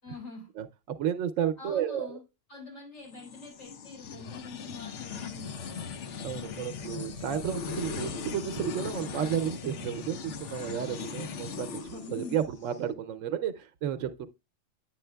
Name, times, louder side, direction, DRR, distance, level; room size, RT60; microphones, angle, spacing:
voice 1, 0.0-0.5 1.6-5.9 12.0-12.3, left 3 dB, 90° left, 4.3 m, -45 dB
voice 2, 1.0-2.1 6.2-14.3, right 9 dB, 80° right, 0.9 m, -32 dB
sound 1, 3.1-12.8, left 5 dB, 70° left, 1.0 m, -39 dB
9.5 x 7.2 x 2.2 m
omnidirectional pair, 1.3 m